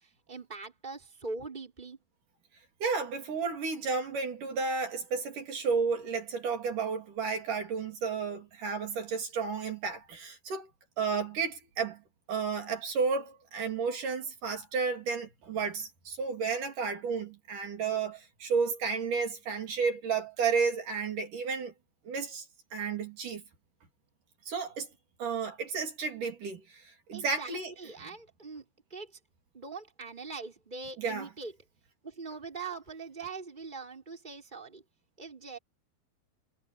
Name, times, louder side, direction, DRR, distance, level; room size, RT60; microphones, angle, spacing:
voice 1, 0.3-2.0 27.1-28.6 28.9-29.1 29.5-31.5 32.0-34.8 35.2-35.6, right 4 dB, 10° right, 5.6 m, -42 dB
voice 2, 2.8-10.7 11.0-12.0 12.3-21.7 22.1-22.4 22.7-23.4 24.5-24.9 25.2-27.7 31.0-31.3, right 5 dB, 50° right, 4.5 m, -32 dB
omnidirectional pair, 4.9 m